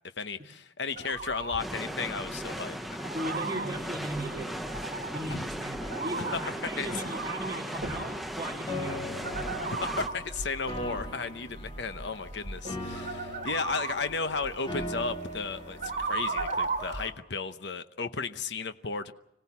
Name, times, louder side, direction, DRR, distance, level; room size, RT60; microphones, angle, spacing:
voice 1, 0.2-3.0 5.3-5.5 6.2-6.9 9.7-19.1, left 4 dB, 65° left, 0.9 m, -34 dB
sound 1, 0.9-17.1, right 3 dB, 40° right, 3.1 m, -37 dB
sound 2, 1.6-10.1, equal, ahead, 0.8 m, -37 dB
voice 2, 3.1-9.7, right 1 dB, 20° right, 2.5 m, -38 dB
Piano, 8.7-16.7, left 1 dB, 25° left, 3.5 m, -41 dB
26.0 x 17.5 x 7.2 m
head